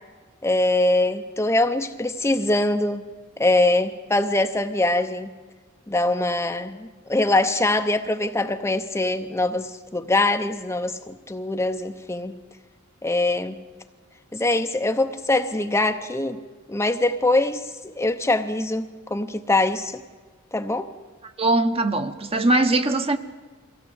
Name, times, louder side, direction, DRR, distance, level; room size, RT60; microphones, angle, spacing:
voice 1, 0.4-3.0 3.4-5.3 5.9-12.4 13.0-13.6 14.3-16.4 16.7-20.0 20.5-20.9, left 2 dB, 10° left, 0.7 m, -23 dB
voice 2, 21.2-23.2, right 2 dB, 25° right, 1.0 m, -21 dB
23.5 x 16.5 x 8.0 m
head